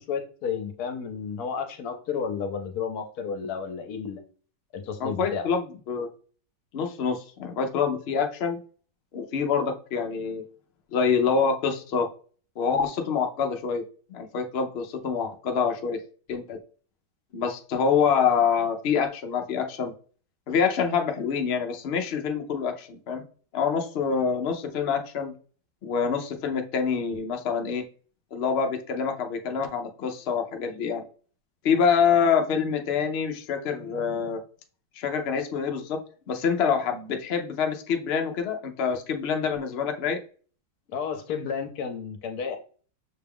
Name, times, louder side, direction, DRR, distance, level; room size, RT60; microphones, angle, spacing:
voice 1, 0.0-4.2 4.7-5.5 40.9-42.6, left 6 dB, 65° left, 6 dB, 1.1 m, -32 dB
voice 2, 5.0-6.1 6.7-8.6 9.1-10.4 10.9-12.1 12.6-13.8 14.1-16.0 16.3-16.6 17.3-19.9 20.5-23.2 23.5-25.3 25.8-27.8 28.3-31.0 31.6-34.4 35.0-36.0 36.3-40.2, left 6 dB, 90° left, 4 dB, 0.5 m, -26 dB
6.5 x 2.3 x 3.5 m, 0.41 s
omnidirectional pair, 1.9 m